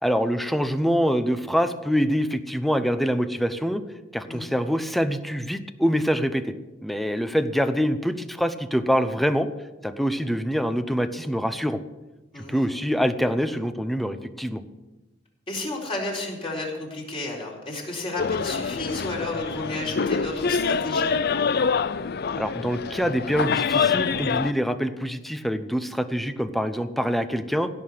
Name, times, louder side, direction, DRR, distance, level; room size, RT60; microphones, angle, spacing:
voice 1, 0.0-3.8 4.1-6.5 6.8-9.5 9.8-11.8 12.4-14.6 22.4-27.7, equal, ahead, 10 dB, 0.8 m, -25 dB
voice 2, 15.5-21.1, left 2 dB, 30° left, -2 dB, 4.3 m, -32 dB
sound 1, 18.2-24.5, left 5 dB, 55° left, 0.5 m, -25 dB
16.5 x 6.7 x 9.3 m, 1.1 s
head